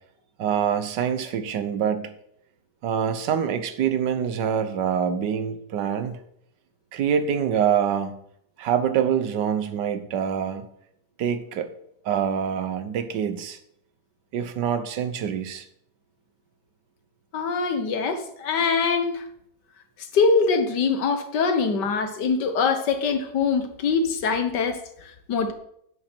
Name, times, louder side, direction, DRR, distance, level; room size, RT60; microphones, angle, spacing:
voice 1, 0.4-2.2 2.8-6.2 6.9-8.1 8.6-10.7 11.2-11.7 12.0-13.6 14.3-15.6, right 8 dB, 85° right, 10 dB, 1.5 m, -25 dB
voice 2, 17.3-19.2 20.1-25.5, left 5 dB, 80° left, 8 dB, 1.8 m, -23 dB
10.5 x 8.7 x 4.4 m, 0.72 s
omnidirectional pair, 1.8 m